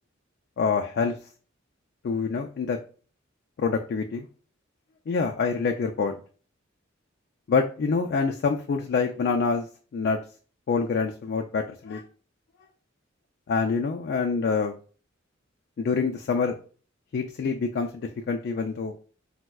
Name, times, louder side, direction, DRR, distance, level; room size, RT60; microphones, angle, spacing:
voice 1, 0.6-1.1 2.0-2.8 3.6-4.3 5.1-6.2 7.5-9.7 9.9-10.2 10.7-12.0 13.5-14.8 15.8-16.5 17.1-17.9 18.3-18.9, left 5 dB, 55° left, 3 dB, 0.3 m, -26 dB
4.3 x 2.0 x 2.3 m, 0.39 s
head